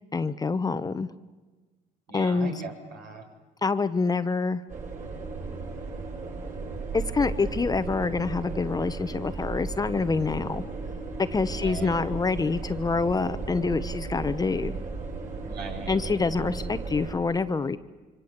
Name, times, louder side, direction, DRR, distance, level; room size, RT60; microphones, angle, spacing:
voice 1, 0.1-1.1 2.1-2.5 3.6-4.6 6.9-10.6 11.2-14.8 15.9-17.8, left 4 dB, 20° left, 12 dB, 0.9 m, -26 dB
voice 2, 2.1-3.2 11.5-12.0 15.4-16.0, right 3 dB, 65° right, 3 dB, 6.3 m, -39 dB
sound 1, 4.7-17.1, right 3 dB, 50° right, 7.6 m, -35 dB
26.0 x 25.0 x 8.3 m, 1.3 s
cardioid pair, 110°, 17 cm